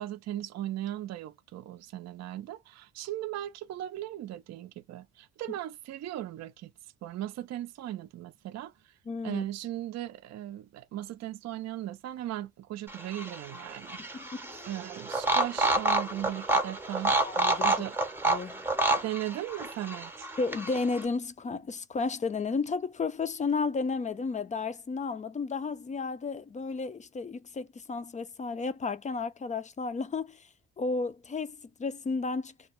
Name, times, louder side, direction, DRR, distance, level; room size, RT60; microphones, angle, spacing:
voice 1, 0.0-6.7 7.0-8.9 9.2-14.3 14.7-17.2 17.6-18.0 19.0-20.3, right 13 dB, 60° right, 0.5 m, -37 dB
voice 2, 9.1-9.4 14.0-14.7 17.2-17.7 18.3-18.6 20.4-30.5 30.8-32.5, left 4 dB, 25° left, 0.3 m, -33 dB
sound 1, 12.9-21.0, right 2 dB, 5° right, 0.7 m, -29 dB
2.2 x 2.1 x 2.9 m
cardioid pair, 90°, 30 cm